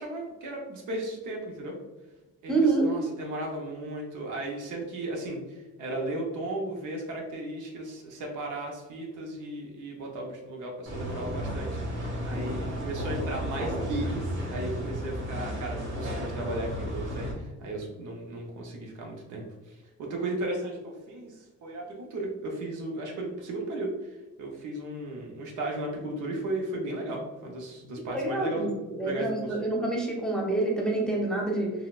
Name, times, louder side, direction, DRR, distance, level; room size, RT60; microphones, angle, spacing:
voice 1, 0.0-1.8 2.4-28.7 29.0-29.6, right 1 dB, 80° right, 0 dB, 0.8 m, -35 dB
voice 2, 2.5-2.9 28.1-28.7 29.0-31.7, right 2 dB, ahead, -2 dB, 0.8 m, -27 dB
sound 1, 10.9-17.3, equal, 65° right, 1.3 m, -33 dB
3.9 x 2.2 x 2.4 m, 1.2 s
cardioid pair, 90°, 30 cm